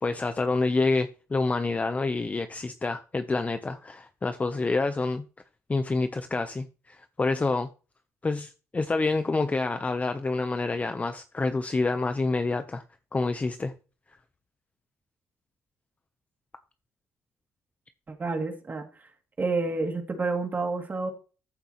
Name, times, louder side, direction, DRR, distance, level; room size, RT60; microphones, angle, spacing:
voice 1, 0.0-5.2 5.7-7.7 8.2-12.8 13.1-13.7, left 3 dB, 25° left, 1.0 m, -27 dB
voice 2, 18.1-18.8 19.4-21.1, right 3 dB, 35° right, 2.8 m, -29 dB
14.0 x 7.7 x 3.2 m
supercardioid pair, 70°, 5 cm